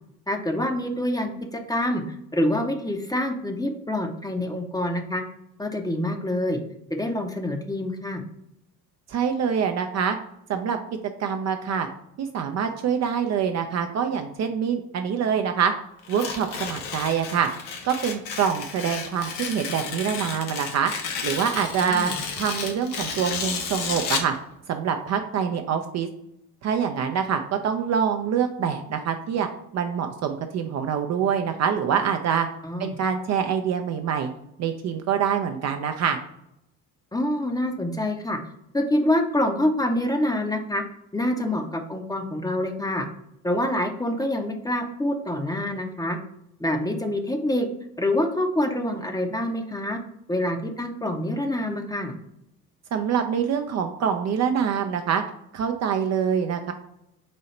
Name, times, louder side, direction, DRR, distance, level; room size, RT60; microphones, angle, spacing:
voice 1, 0.3-2.0 2.3-5.2 5.6-6.6 6.9-8.2 21.8-22.2 32.6-32.9 37.1-38.4 38.7-40.8 41.1-43.0 43.4-46.2 46.6-47.7 48.0-50.0 50.3-52.1, left 1 dB, 10° left, 4 dB, 0.7 m, -26 dB
voice 2, 9.1-10.2 10.5-10.8 11.2-11.9 12.2-15.7 16.1-17.5 17.8-20.9 21.2-24.3 24.7-26.1 26.6-29.5 29.7-32.5 32.8-34.3 34.6-36.2 52.9-55.2 55.5-56.7, right 7 dB, 40° right, 6 dB, 0.5 m, -25 dB
Tearing, 16.0-24.4, left 6 dB, 60° left, 1.0 m, -32 dB
4.2 x 2.7 x 4.3 m, 0.79 s
figure-of-eight pair, 55°, 44 cm